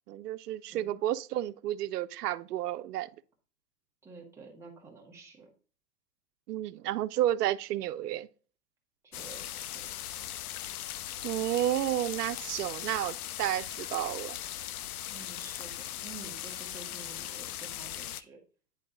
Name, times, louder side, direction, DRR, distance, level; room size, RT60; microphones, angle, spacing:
voice 1, 0.1-3.1 6.5-8.3 11.2-14.4, right 13 dB, 75° right, 0.6 m, -31 dB
voice 2, 4.0-5.5 9.0-10.0 15.1-18.4, right 4 dB, 5° right, 1.2 m, -50 dB
sound 1, 9.1-18.2, left 12 dB, 65° left, 0.6 m, -39 dB
9.7 x 3.8 x 3.7 m
hypercardioid pair, 155°, 48 cm